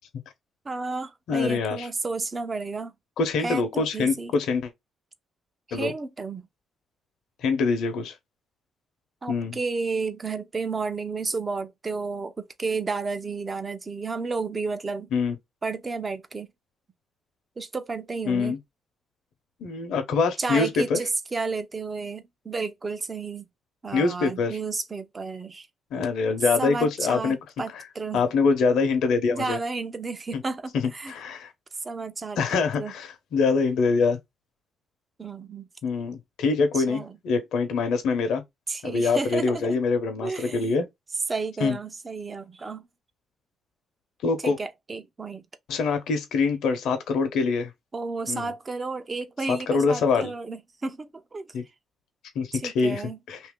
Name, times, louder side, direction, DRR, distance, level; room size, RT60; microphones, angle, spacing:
voice 1, 0.6-2.9 3.4-4.3 5.7-6.5 9.2-15.1 15.6-16.5 17.6-18.6 20.4-23.5 23.8-25.7 26.6-28.2 29.3-31.1 31.8-32.9 35.2-35.7 36.7-37.1 38.7-39.8 40.2-40.8 41.3-42.9 44.4-45.4 47.9-51.5 52.5-53.2, right 4 dB, 30° right, 0.7 m, -32 dB
voice 2, 1.3-1.9 3.2-4.7 5.7-5.9 7.4-8.2 9.3-9.6 15.1-15.3 18.3-18.6 19.6-21.0 23.9-24.6 25.9-27.4 28.1-29.6 30.3-30.4 30.8-31.5 32.4-34.2 35.8-38.4 38.8-40.8 41.6-41.8 44.2-44.6 45.7-47.7 48.3-48.5 49.5-50.3 51.5-51.6 52.3-53.0 53.3-53.4, left 4 dB, 75° left, 0.8 m, -24 dB
2.8 x 2.7 x 3.6 m
cardioid pair, 90°, 0 cm